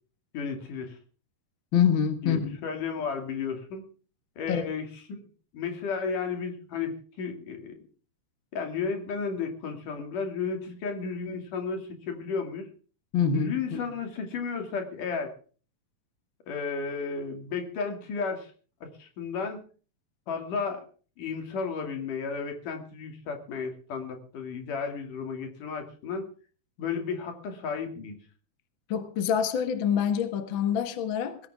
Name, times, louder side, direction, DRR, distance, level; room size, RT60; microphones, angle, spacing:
voice 1, 0.3-1.0 2.2-3.8 4.4-5.2 5.5-7.7 8.5-12.7 13.3-15.3 16.5-18.5 18.8-19.6 20.3-20.9 21.2-26.3 26.8-28.2, left 5 dB, 75° left, 5 dB, 4.3 m, -33 dB
voice 2, 1.7-2.6 4.5-4.6 13.1-13.8 28.9-31.4, left 7 dB, 45° left, 9 dB, 1.8 m, -26 dB
19.5 x 16.0 x 3.6 m, 0.40 s
omnidirectional pair, 3.7 m